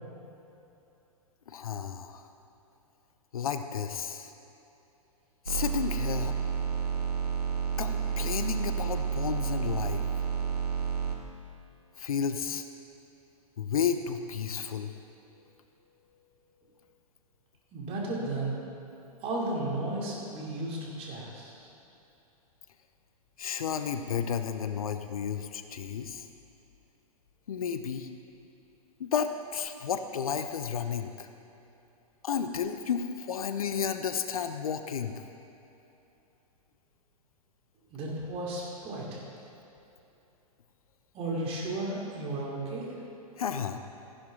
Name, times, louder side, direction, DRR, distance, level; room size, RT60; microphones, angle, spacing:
voice 1, 1.5-2.2 3.3-4.3 5.5-6.3 7.8-10.0 12.0-12.6 13.6-14.9 23.4-26.3 27.5-28.1 29.0-31.3 32.2-35.1 43.4-43.8, left 7 dB, 70° left, 9 dB, 0.7 m, -32 dB
sound 1, 5.5-11.2, right 7 dB, 90° right, 1.2 m, -30 dB
voice 2, 17.7-18.6 19.2-21.7 37.9-39.2 41.1-42.9, right 2 dB, 30° right, -3 dB, 2.9 m, -34 dB
14.0 x 11.0 x 3.8 m, 2.9 s
figure-of-eight pair, 110°, 19 cm